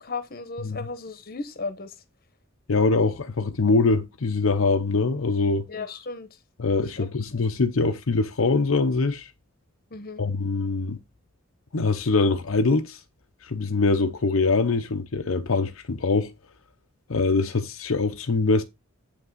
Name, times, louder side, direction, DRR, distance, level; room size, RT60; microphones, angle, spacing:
voice 1, 0.0-1.9 5.7-6.3 7.0-7.1 7.3-7.4 9.9-10.2, left 3 dB, 45° left, 1.1 m, -35 dB
voice 2, 2.7-5.6 6.6-9.3 10.2-11.0 11.7-13.0 13.4-16.3 17.1-18.6, left 3 dB, 80° left, 0.7 m, -23 dB
8.3 x 5.7 x 4.0 m
head